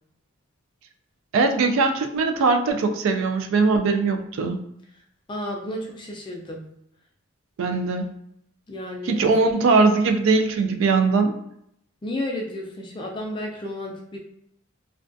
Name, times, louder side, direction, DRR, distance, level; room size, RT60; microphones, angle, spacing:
voice 1, 1.3-4.6 7.6-8.1 9.0-11.3, right 4 dB, 75° right, 6 dB, 0.3 m, -20 dB
voice 2, 5.3-6.6 8.7-9.2 12.0-14.2, left 1 dB, 25° left, 0 dB, 0.3 m, -32 dB
2.3 x 2.2 x 2.5 m, 0.73 s
head